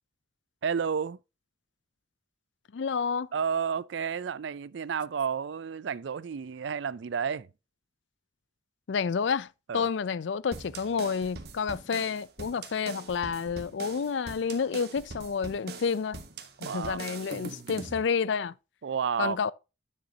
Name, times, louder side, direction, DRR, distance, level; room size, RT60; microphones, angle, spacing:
voice 1, 0.6-1.2 3.3-7.5 9.7-9.9 16.6-17.0 18.8-19.4, right 6 dB, 75° right, 0.4 m, -31 dB
voice 2, 2.7-3.3 8.9-9.5 9.7-16.2 16.6-18.5 19.2-19.5, left 6 dB, 75° left, 0.4 m, -29 dB
sound 1, 10.5-18.0, right 3 dB, 55° right, 1.1 m, -42 dB
9.6 x 6.6 x 2.8 m
head